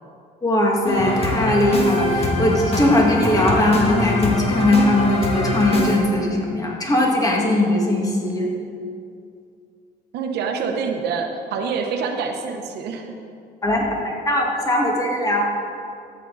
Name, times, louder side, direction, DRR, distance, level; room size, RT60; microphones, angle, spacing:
voice 1, 0.4-8.5 13.6-15.5, left 1 dB, 20° left, -1 dB, 2.0 m, -20 dB
sound 1, 0.8-6.0, left 2 dB, 35° left, 1.7 m, -23 dB
voice 2, 10.1-13.2, right 5 dB, 75° right, 3 dB, 1.1 m, -26 dB
13.0 x 8.2 x 4.1 m, 2.4 s
cardioid pair, 110°, 17 cm